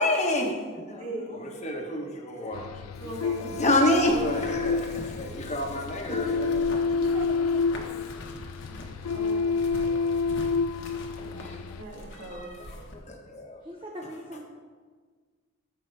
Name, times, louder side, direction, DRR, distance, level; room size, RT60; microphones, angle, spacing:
voice 1, 0.0-1.0 1.3-2.7 3.4-6.4 7.7-7.9 9.8-10.1 11.1-11.6 12.1-13.6, left 1 dB, 30° left, 2 dB, 1.1 m, -29 dB
voice 2, 1.0-1.6 2.3-2.6 3.0-3.5 8.7-9.9 11.0-12.6, right 1 dB, 75° right, -3 dB, 2.2 m, -42 dB
sound 1, 2.5-11.8, left 4 dB, 75° left, 0.3 m, -29 dB
voice 3, 3.0-4.1 6.2-6.5 6.9-8.1 13.6-14.4, right 1 dB, 20° right, -2 dB, 0.9 m, -41 dB
sound 2, 3.9-12.9, left 1 dB, 55° left, 1.2 m, -43 dB
13.5 x 6.6 x 3.3 m, 1.5 s
head